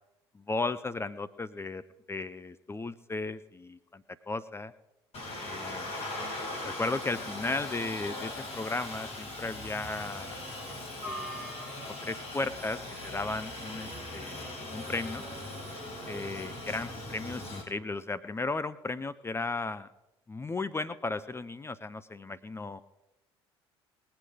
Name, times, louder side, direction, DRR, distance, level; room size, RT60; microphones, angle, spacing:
voice 1, 0.3-1.8 2.1-4.7 5.4-5.9 6.6-10.3 10.7-10.8 11.1-11.5 12.0-15.2 16.1-19.9 20.3-22.8, left 3 dB, 20° left, 13 dB, 0.6 m, -35 dB
Aircraft, 5.1-17.6, left 1 dB, 45° left, 5.9 m, -39 dB
20.5 x 8.1 x 5.1 m, 0.95 s
figure-of-eight pair, 60°, 14 cm